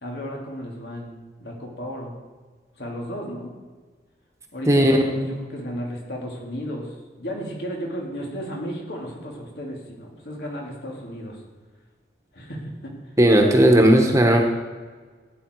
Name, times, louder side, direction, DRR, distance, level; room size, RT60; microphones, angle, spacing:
voice 1, 0.0-2.1 2.8-3.5 4.5-11.4 12.3-12.9, equal, 75° left, -1 dB, 3.1 m, -34 dB
voice 2, 4.7-5.4 13.2-14.4, right 1 dB, 15° right, 3 dB, 1.3 m, -16 dB
15.5 x 9.3 x 4.7 m, 1.4 s
head